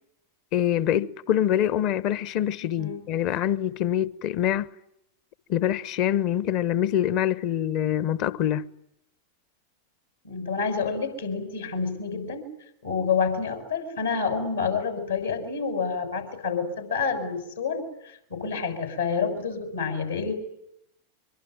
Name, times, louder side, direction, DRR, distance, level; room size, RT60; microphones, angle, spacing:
voice 1, 0.5-4.7 5.5-8.6, left 11 dB, 40° left, 1.1 m, -25 dB
voice 2, 10.2-12.5 12.8-20.3, left 5 dB, 75° left, 7.1 m, -28 dB
24.5 x 24.0 x 9.5 m
figure-of-eight pair, 90°, 0 cm